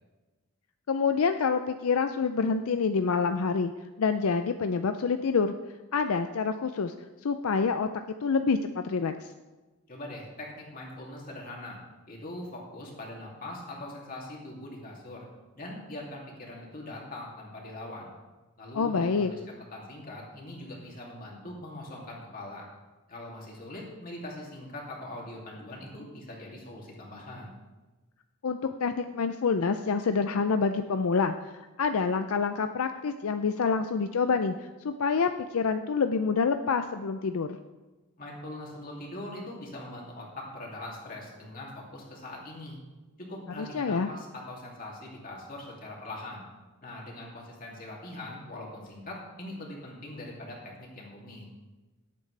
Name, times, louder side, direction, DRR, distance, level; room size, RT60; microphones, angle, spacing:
voice 1, 0.9-3.7 4.0-5.5 5.9-6.9 7.2-7.9 8.2-9.3 18.7-19.3 28.4-37.6 43.6-44.1, left 5 dB, 75° left, 8 dB, 0.5 m, -27 dB
voice 2, 9.9-11.8 12.1-15.3 15.6-18.1 18.6-19.4 19.7-22.7 23.1-27.5 38.2-42.8 43.3-46.4 46.8-51.5, left 1 dB, 40° left, -2 dB, 2.7 m, -42 dB
17.5 x 8.5 x 3.3 m, 1.2 s
head